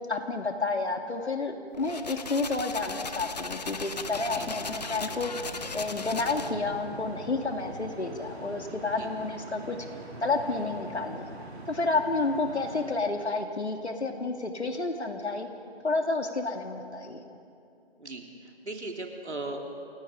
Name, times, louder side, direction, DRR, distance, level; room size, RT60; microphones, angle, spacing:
voice 1, 0.1-5.5 5.7-9.8 10.2-11.3 11.7-15.5 15.8-17.2, left 3 dB, 80° left, 4 dB, 2.5 m, -30 dB
sound 1, 1.7-6.7, left 4 dB, 40° left, 0.9 m, -38 dB
sound 2, 4.1-13.0, right 2 dB, 75° right, 2.9 m, -44 dB
voice 2, 18.0-19.6, right 2 dB, 90° right, 1 dB, 3.4 m, -38 dB
28.0 x 18.0 x 5.1 m, 2.5 s
figure-of-eight pair, 165°, 33 cm